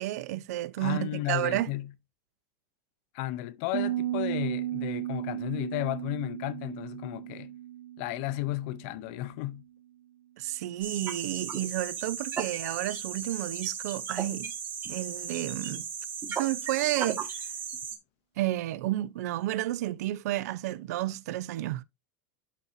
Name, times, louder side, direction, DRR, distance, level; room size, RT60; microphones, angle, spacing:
voice 1, 0.0-1.7 10.4-14.5 14.9-15.8 16.3-17.3 18.4-21.8, right 15 dB, 80° right, 0.6 m, -31 dB
voice 2, 0.8-1.9 3.1-7.5 8.0-9.6, left 16 dB, 50° left, 0.6 m, -33 dB
Piano, 3.7-9.3, right 13 dB, 45° right, 1.1 m, -35 dB
sound 1, 10.8-18.0, right 7 dB, 20° right, 1.3 m, -36 dB
12.0 x 4.2 x 2.5 m
supercardioid pair, 175°, 9 cm